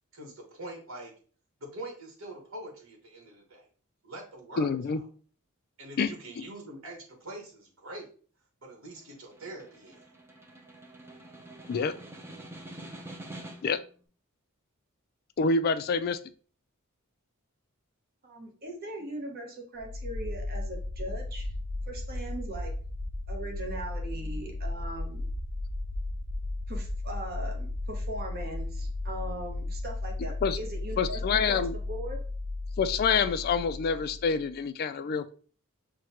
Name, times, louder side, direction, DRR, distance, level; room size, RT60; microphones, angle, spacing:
voice 1, 0.1-1.1 1.6-3.7 4.0-5.0 5.8-8.0 8.6-10.0, right 1 dB, 65° right, 0 dB, 1.3 m, -44 dB
voice 2, 4.6-5.0 6.0-6.1 11.7-11.9 13.6-13.8 15.4-16.2 30.4-30.6 31.0-31.7 32.8-35.3, left 5 dB, 45° left, 12 dB, 0.3 m, -27 dB
Snare drum, 9.0-13.9, right 1 dB, 10° right, 0.5 m, -46 dB
voice 3, 18.2-21.5 21.9-22.7 23.3-25.3 26.7-32.2, right 1 dB, 45° right, 2 dB, 0.9 m, -40 dB
sound 1, 19.8-34.6, left 2 dB, 80° right, 0.6 m, -35 dB
6.1 x 2.2 x 2.8 m, 0.41 s
head